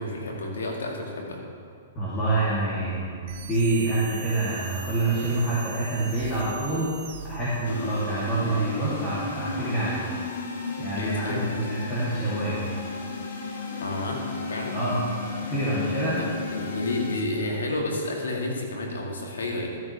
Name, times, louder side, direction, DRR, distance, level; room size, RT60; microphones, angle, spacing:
voice 1, 0.0-1.4 11.0-11.7 13.8-14.2 14.5-14.8 16.5-19.8, left 2 dB, 85° left, 0 dB, 2.1 m, -30 dB
voice 2, 1.9-6.9 7.2-10.0 10.8-12.6 14.7-15.0 15.5-16.2, right 2 dB, 25° left, -10 dB, 3.1 m, -27 dB
sound 1, 3.3-8.1, right 9 dB, 55° right, 0.6 m, -42 dB
sound 2, 7.6-17.2, left 3 dB, 70° left, 1.5 m, -34 dB
13.5 x 8.9 x 3.5 m, 2.3 s
hypercardioid pair, 135°, 0 cm